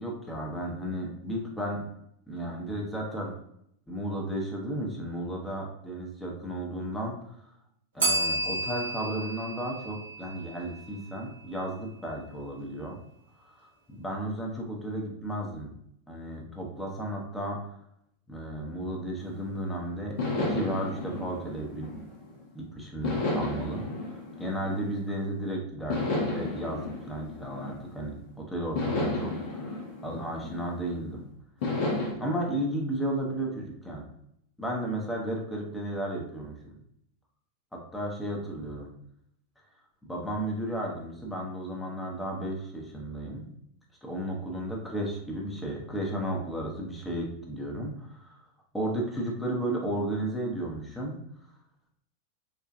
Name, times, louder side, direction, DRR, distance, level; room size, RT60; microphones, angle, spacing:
voice 1, 0.0-1.8 2.3-3.3 3.9-7.5 7.9-13.0 13.4-15.7 16.1-17.6 18.3-21.9 22.5-31.2 32.2-34.1 34.6-36.8 37.7-38.9 40.0-43.5 44.0-48.4 48.7-51.2, right 1 dB, 5° left, -1 dB, 0.7 m, -34 dB
Bell, 8.0-10.8, right 2 dB, 65° right, 0.9 m, -31 dB
sound 1, 19.2-19.6 20.2-22.4 23.0-25.3 25.9-28.2 28.7-31.0 31.6-32.1, left 2 dB, 45° left, 0.7 m, -32 dB
3.5 x 2.4 x 2.5 m, 0.74 s
figure-of-eight pair, 90°, 0 cm